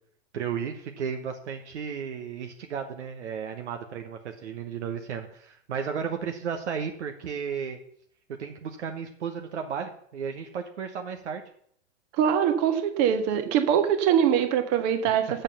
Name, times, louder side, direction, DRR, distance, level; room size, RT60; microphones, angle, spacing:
voice 1, 0.3-7.8 8.4-11.4, right 7 dB, 70° right, 5 dB, 1.2 m, -34 dB
voice 2, 12.2-15.4, right 9 dB, 45° right, 7 dB, 1.7 m, -23 dB
7.9 x 7.0 x 6.9 m, 0.64 s
figure-of-eight pair, 100°, 36 cm